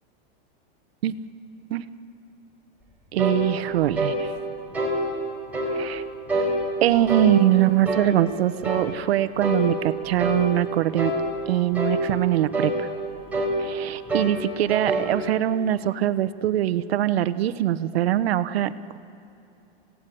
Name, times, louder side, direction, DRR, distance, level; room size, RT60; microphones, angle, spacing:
voice 1, 3.1-4.3 5.7-6.0 6.8-11.1 11.5-12.9 13.6-19.0, right 12 dB, 80° right, 13 dB, 1.0 m, -23 dB
sound 1, 3.2-3.4 4.0-4.2 4.7-5.0 5.5-5.8 6.3-6.5 7.1-7.3 7.8-8.1 8.6-8.9 9.4-9.6 10.2-10.5 11.0-11.2 11.7-12.0 12.5-12.8 13.3-13.6 14.1-14.4 14.7-15.1, right 1 dB, 5° right, 4.3 m, -25 dB
27.5 x 17.0 x 9.3 m, 2.8 s
supercardioid pair, 170°, 30 cm